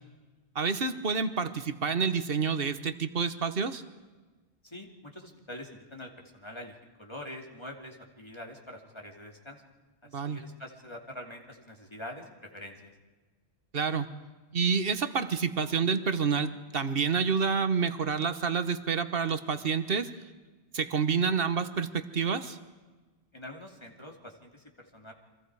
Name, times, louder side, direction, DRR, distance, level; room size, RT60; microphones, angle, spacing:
voice 1, 0.5-3.8 10.1-10.4 13.7-14.1 14.5-20.1 20.7-22.6, right 5 dB, 55° right, 11 dB, 1.4 m, -28 dB
voice 2, 4.6-9.6 10.1-12.9 23.3-25.1, left 1 dB, 25° left, 1 dB, 2.8 m, -45 dB
30.0 x 24.0 x 4.8 m, 1.3 s
omnidirectional pair, 1.1 m